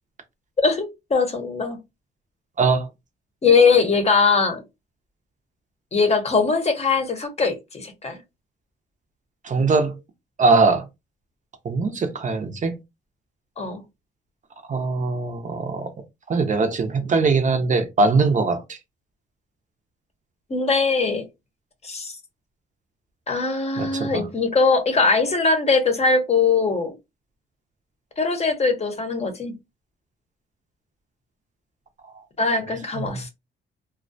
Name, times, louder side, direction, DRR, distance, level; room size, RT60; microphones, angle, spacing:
voice 1, 0.6-1.8 3.4-4.6 5.9-8.2 13.6-13.8 20.5-21.3 21.8-22.1 23.3-27.0 28.2-29.6 32.4-33.3, left 4 dB, 30° left, 0.7 m, -21 dB
voice 2, 2.6-2.9 9.4-10.0 10.4-10.8 11.6-12.8 14.7-15.9 16.3-18.8 23.8-24.3, right 4 dB, 40° right, 0.6 m, -21 dB
2.3 x 2.1 x 2.6 m
cardioid pair, 90°, 20 cm